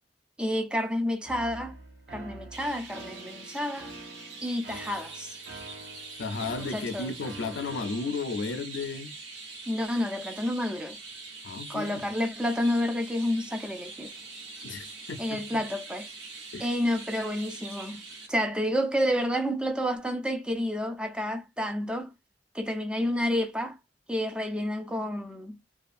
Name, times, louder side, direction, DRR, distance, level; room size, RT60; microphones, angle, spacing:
voice 1, 0.4-1.8 2.1-3.9 4.4-5.4 6.7-7.1 9.7-11.0 11.7-14.1 15.2-16.1 16.6-18.0 18.3-22.1 22.5-23.8 24.1-25.6, equal, 5° right, 0.4 m, -29 dB
sound 1, 1.2-8.1, right 2 dB, 70° right, 0.6 m, -46 dB
Chirp tweet, 2.5-18.3, right 3 dB, 85° right, 0.9 m, -44 dB
voice 2, 6.2-9.2 11.4-12.0 14.6-15.6 16.5-16.7, left 4 dB, 80° left, 0.4 m, -34 dB
2.5 x 2.3 x 2.4 m
head